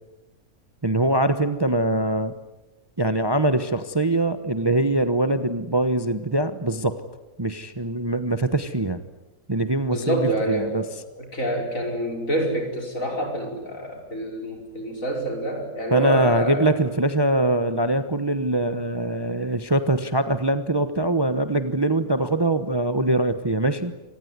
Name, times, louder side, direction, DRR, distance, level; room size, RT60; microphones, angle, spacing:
voice 1, 0.8-2.3 3.0-7.0 7.4-9.0 9.5-10.8 15.9-23.9, right 1 dB, 20° right, 10 dB, 1.0 m, -23 dB
voice 2, 9.9-10.9 11.2-16.7, right 1 dB, 60° left, 2 dB, 5.8 m, -27 dB
25.5 x 19.5 x 9.6 m, 1.0 s
omnidirectional pair, 1.6 m